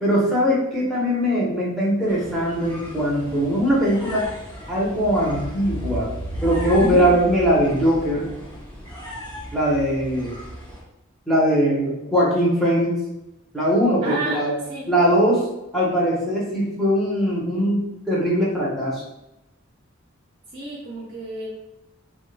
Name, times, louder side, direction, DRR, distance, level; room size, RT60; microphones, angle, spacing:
voice 1, 0.0-4.3 4.7-6.1 6.4-8.3 9.5-10.3 11.3-12.9 13.5-14.5 14.9-15.4 15.7-19.0, equal, ahead, -7 dB, 0.9 m, -21 dB
sound 1, 2.1-10.8, equal, 25° left, 1.1 m, -34 dB
voice 2, 6.8-7.1 14.0-14.9 20.5-21.5, right 2 dB, 40° right, -5 dB, 0.7 m, -31 dB
3.1 x 2.2 x 3.2 m, 0.92 s
head